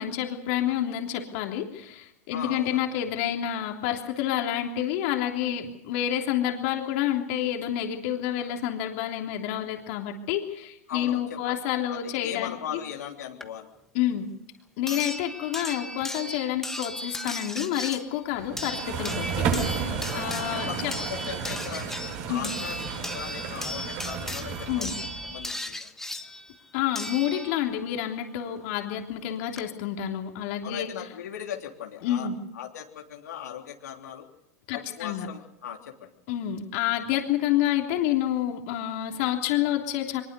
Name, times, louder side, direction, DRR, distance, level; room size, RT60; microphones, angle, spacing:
voice 1, 0.0-12.6 13.9-14.3 14.8-20.9 22.3-22.5 24.7-24.9 26.7-30.9 32.0-32.4 34.7-35.3 36.3-40.2, left 11 dB, 55° left, 2 dB, 3.3 m, -29 dB
voice 2, 2.3-2.8 10.9-11.6 11.9-13.7 20.1-21.9 22.3-24.9 25.3-25.9 30.6-32.3 32.5-34.3 34.7-36.1, left 9 dB, 85° left, 1 dB, 3.3 m, -39 dB
sound 1, 13.4-13.5 14.9-27.9 29.1-29.2 29.6-29.7, left 1 dB, 5° left, 1.4 m, -36 dB
sound 2, 18.4-25.4, right 6 dB, 55° right, 6.3 m, -32 dB
23.0 x 21.0 x 6.9 m, 0.83 s
hypercardioid pair, 115°, 9 cm